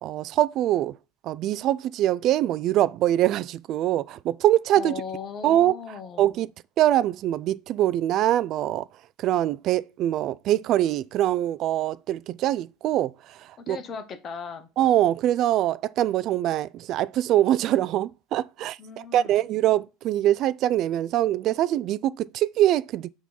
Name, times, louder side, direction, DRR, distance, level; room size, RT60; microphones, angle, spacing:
voice 1, 0.0-0.9 1.2-4.9 5.4-5.7 6.2-6.5 6.8-8.9 9.2-13.1 13.7-13.8 14.8-23.1, right 13 dB, 50° right, 0.3 m, -23 dB
voice 2, 4.8-6.3 13.6-14.7 18.8-19.4, left 6 dB, 40° left, 1.0 m, -37 dB
6.1 x 3.1 x 5.4 m
hypercardioid pair, 85°, 0 cm